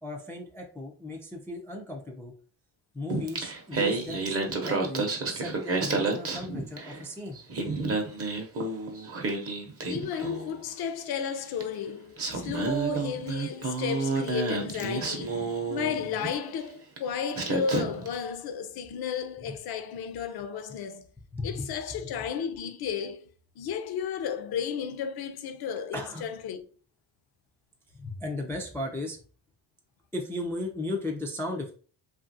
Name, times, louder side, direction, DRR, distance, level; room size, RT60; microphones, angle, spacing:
voice 1, 0.0-2.3 2.9-7.4 19.5-19.6 21.3-21.7 25.9-26.2 27.9-29.2 30.1-31.7, left 2 dB, 5° left, 0.3 m, -36 dB
Singing, 3.1-7.0 7.4-10.6 11.6-11.7 12.2-16.4 17.0-17.1 17.3-18.1, right 3 dB, 30° right, 0.7 m, -30 dB
voice 2, 9.9-21.0 21.4-23.3 23.6-26.7, left 6 dB, 55° left, 0.5 m, -33 dB
2.8 x 2.4 x 2.6 m
cardioid pair, 100°, 46 cm